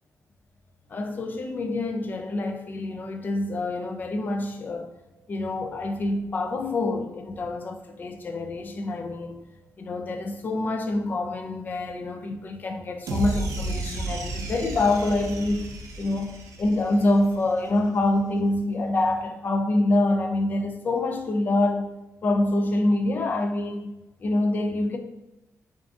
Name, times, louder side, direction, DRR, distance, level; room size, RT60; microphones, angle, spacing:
voice 1, 0.9-4.9 5.3-9.4 9.8-21.9 22.2-23.9 24.2-25.0, left 2 dB, 35° left, 0.3 m, -26 dB
sound 1, 13.1-17.4, right 2 dB, 75° right, 0.5 m, -33 dB
3.4 x 2.5 x 3.5 m
wide cardioid pair, 165°, 6 cm